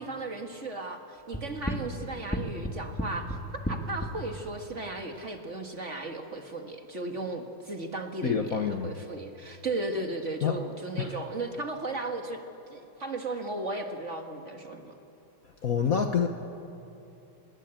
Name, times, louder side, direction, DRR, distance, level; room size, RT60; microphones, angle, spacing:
voice 1, 0.0-12.4 12.7-15.0, right 2 dB, 35° right, 4 dB, 1.7 m, -36 dB
sound 1, 1.3-4.1, equal, 5° left, 1.8 m, -31 dB
voice 2, 8.2-8.9 10.4-10.6 11.0-11.2 15.6-16.3, left 7 dB, 50° left, 6 dB, 1.3 m, -27 dB
24.5 x 21.5 x 8.9 m, 2.7 s
omnidirectional pair, 2.4 m